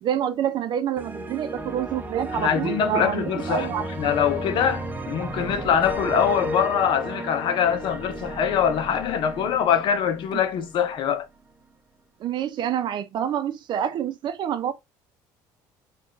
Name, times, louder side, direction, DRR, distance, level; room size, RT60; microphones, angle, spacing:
voice 1, 0.0-4.1 12.2-14.7, right 10 dB, 55° right, 0.6 m, -27 dB
sound 1, 1.0-11.0, right 2 dB, 20° right, 0.7 m, -34 dB
voice 2, 2.4-11.3, left 8 dB, 60° left, 0.7 m, -23 dB
3.9 x 2.4 x 3.6 m
cardioid pair, 105°, 9 cm